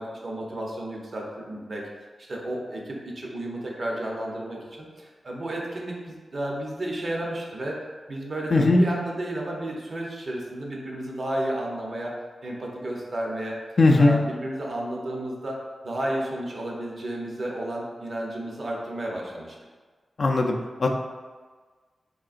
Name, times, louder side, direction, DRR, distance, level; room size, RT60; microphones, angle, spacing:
voice 1, 0.0-1.9 2.3-7.8 8.1-12.1 12.4-13.6 14.0-15.6 15.8-19.6, right 1 dB, 50° right, -2 dB, 0.7 m, -32 dB
voice 2, 8.5-8.8 13.8-14.2 20.2-20.5 20.8-20.9, left 2 dB, 50° left, 1 dB, 0.3 m, -18 dB
3.6 x 3.6 x 2.5 m, 1.4 s
wide cardioid pair, 125°, 0 cm